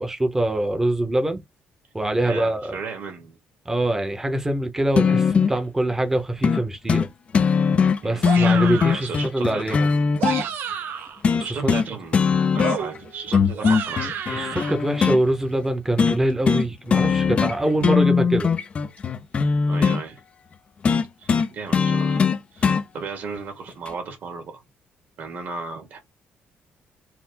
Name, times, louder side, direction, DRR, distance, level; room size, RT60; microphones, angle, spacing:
voice 1, 0.0-1.4 1.9-2.8 3.7-7.1 8.0-9.9 11.4-11.7 14.3-18.5, right 1 dB, 10° right, 0.9 m, -24 dB
voice 2, 2.2-3.4 8.0-10.2 11.4-12.3 12.5-14.1 17.5-17.9 19.7-20.2 21.2-24.6 25.2-26.0, right 4 dB, 50° right, 1.9 m, -35 dB
sound 1, 5.0-5.6 6.4-6.6 6.9-7.1 7.3-10.4 11.2-11.9 12.1-13.0 13.3-15.2 16.0-16.2 16.5-16.7 16.9-17.6 17.8-20.0 20.8-22.8 23.9-24.0, left 5 dB, 30° left, 0.5 m, -20 dB
sound 2, 8.2-9.1 10.0-11.2 12.6-14.7, right 7 dB, 70° right, 0.7 m, -30 dB
4.4 x 2.2 x 3.8 m
cardioid pair, 155°, 4 cm